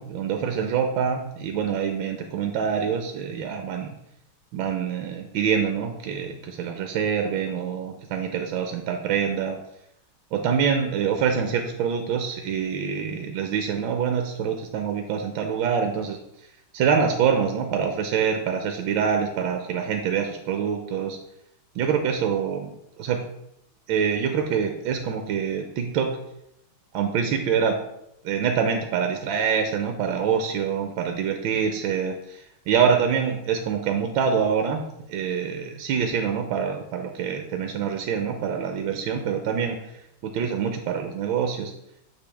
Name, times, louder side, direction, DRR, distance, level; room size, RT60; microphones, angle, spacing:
voice 1, 0.0-3.9 4.5-9.6 10.3-16.2 16.7-21.2 21.7-22.7 23.0-23.2 23.9-26.2 26.9-27.8 28.2-34.8 35.1-39.9 40.2-41.7, right 7 dB, 80° right, 5 dB, 1.4 m, -25 dB
7.4 x 4.9 x 3.4 m, 0.80 s
omnidirectional pair, 2.3 m